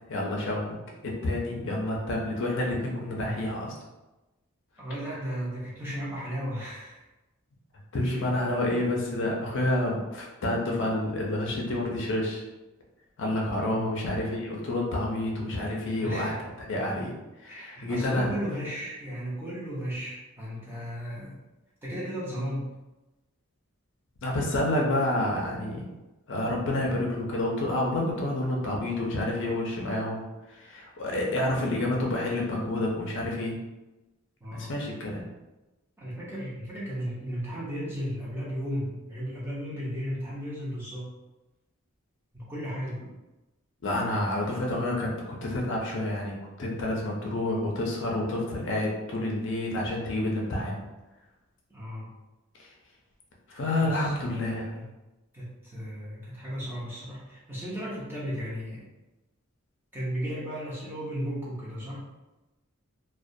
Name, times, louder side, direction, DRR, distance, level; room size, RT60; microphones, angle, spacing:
voice 1, 0.1-3.7 7.9-12.4 13.2-16.3 16.7-17.1 17.4-18.3 24.2-25.9 26.3-30.2 30.5-33.6 34.5-35.2 43.8-50.8 52.6-52.7 53.5-54.7, left 1 dB, 60° left, -1 dB, 0.5 m, -29 dB
voice 2, 4.8-7.0 8.0-8.2 13.6-14.2 16.0-16.4 17.5-21.4 21.8-22.7 34.4-34.7 36.0-41.1 42.3-43.0 51.7-52.1 53.8-54.9 55.3-58.8 59.9-62.0, equal, 10° right, -7 dB, 0.6 m, -35 dB
2.3 x 2.2 x 2.6 m, 1.1 s
head